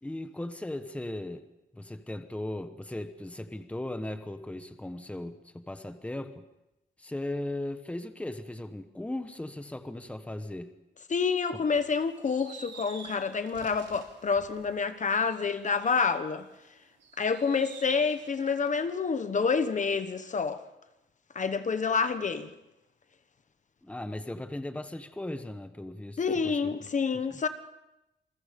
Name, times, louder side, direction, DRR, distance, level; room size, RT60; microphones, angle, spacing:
voice 1, 0.0-1.4 1.7-6.4 7.0-10.7 23.8-26.7 27.1-27.4, left 1 dB, 5° left, 1.1 m, -37 dB
voice 2, 11.1-16.5 17.2-20.6 21.3-22.5 26.2-27.5, left 5 dB, 40° left, 1.2 m, -28 dB
sound 1, 11.7-16.5 17.0-18.8, right 5 dB, 85° right, 3.6 m, -50 dB
28.5 x 21.5 x 5.3 m
wide cardioid pair, 150°, 18 cm